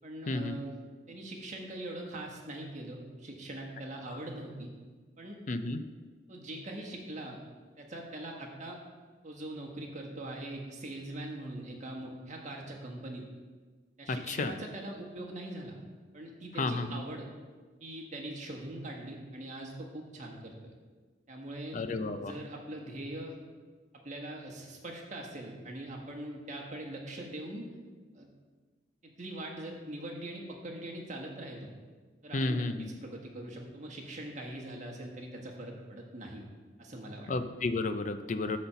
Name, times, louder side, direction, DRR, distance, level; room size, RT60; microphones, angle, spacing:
voice 1, 0.0-4.7 5.2-5.4 6.3-7.4 7.8-8.8 9.2-13.2 14.0-15.8 16.1-17.3 17.8-20.7 21.3-21.8 22.2-23.4 23.9-27.7 28.1-28.3 29.0-31.7 32.2-36.4 36.8-37.3, right 1 dB, 40° right, 0 dB, 1.4 m, -42 dB
voice 2, 5.5-5.8 14.1-14.5 16.6-17.0 21.7-22.3 32.3-32.9 37.3-38.6, left 2 dB, 45° left, 10 dB, 0.5 m, -32 dB
9.5 x 4.3 x 6.8 m, 1.4 s
head